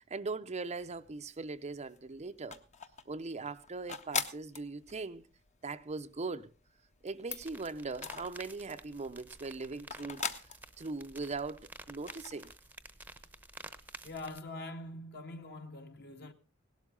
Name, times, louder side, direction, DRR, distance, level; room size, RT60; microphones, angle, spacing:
voice 1, 0.0-2.6 3.1-5.2 5.6-6.5 7.0-10.3 10.8-12.5, right 3 dB, 30° right, 0.6 m, -40 dB
sound 1, 0.8-1.5 1.8-8.8 9.2-11.5 11.9-12.5, left 5 dB, 35° left, 1.1 m, -41 dB
sound 2, 7.3-14.4, right 2 dB, 10° right, 0.9 m, -51 dB
voice 2, 14.0-16.3, left 2 dB, 50° left, 1.8 m, -44 dB
18.0 x 12.5 x 3.8 m
head